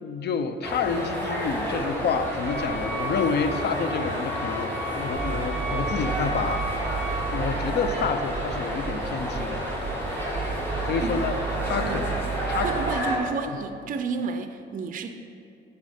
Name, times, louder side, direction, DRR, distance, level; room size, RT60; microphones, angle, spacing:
voice 1, 0.0-6.7 7.3-9.6 10.8-11.3 11.6-12.0 12.5-12.8 13.5-13.6, left 5 dB, 55° left, 9 dB, 0.6 m, -29 dB
sound 1, 0.6-13.2, equal, 10° left, 1.8 m, -30 dB
Wind instrument woodwind instrument, 2.4-7.3, left 1 dB, 40° left, 1.3 m, -35 dB
sound 2, 5.1-13.0, right 6 dB, 15° right, 0.9 m, -33 dB
voice 2, 12.4-15.1, right 5 dB, 45° right, 7 dB, 0.5 m, -31 dB
9.6 x 4.2 x 4.9 m, 2.6 s
cardioid pair, 90°, 20 cm